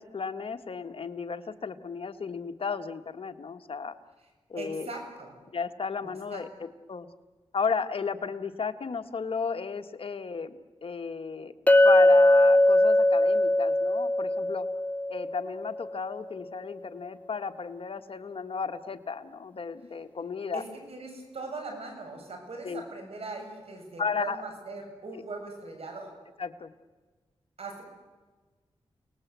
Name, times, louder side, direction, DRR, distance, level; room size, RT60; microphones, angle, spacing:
voice 1, 0.0-3.9 4.5-4.9 5.5-6.5 6.9-7.1 7.5-11.5 11.8-14.6 15.1-20.6 22.6-22.8 24.0-24.4 26.4-26.7, left 5 dB, 60° left, 8 dB, 1.5 m, -34 dB
voice 2, 4.6-5.4 6.3-6.4 20.5-26.1 27.6-27.8, right 3 dB, 70° right, 3 dB, 7.5 m, -40 dB
Chink clink, 11.7-15.9, left 1 dB, 15° left, 0.9 m, -21 dB
29.5 x 19.5 x 8.2 m, 1.3 s
cardioid pair, 60°, 10 cm